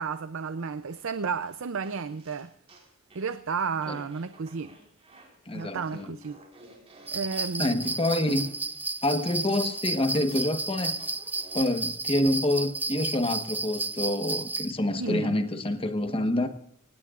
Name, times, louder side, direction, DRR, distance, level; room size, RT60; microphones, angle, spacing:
voice 1, 0.0-2.5 3.1-4.7 5.5-6.4 7.1-7.9 14.9-15.4, right 5 dB, 75° right, 0.6 m, -32 dB
sound 1, 0.9-3.3 3.8-11.8, equal, 30° right, 4.9 m, -53 dB
voice 2, 5.5-6.1 7.6-8.5 9.0-10.9 11.5-16.5, left 1 dB, 25° left, 1.2 m, -27 dB
sound 2, 7.1-14.7, right 3 dB, 10° right, 0.5 m, -32 dB
24.0 x 18.5 x 2.5 m
head